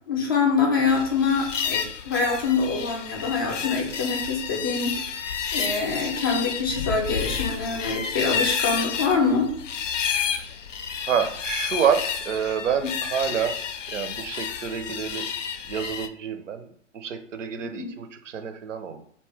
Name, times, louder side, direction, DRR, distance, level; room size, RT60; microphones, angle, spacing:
voice 1, 0.1-5.2 5.5-9.5 17.6-17.9, left 4 dB, 20° left, 0 dB, 0.3 m, -25 dB
sound 1, 0.9-16.1, left 7 dB, 75° left, 0.5 m, -30 dB
voice 2, 11.0-13.6 13.9-15.3 15.6-16.7 16.9-19.0, right 7 dB, 70° right, 8 dB, 0.6 m, -27 dB
2.7 x 2.1 x 3.2 m, 0.65 s
figure-of-eight pair, 120°, 38 cm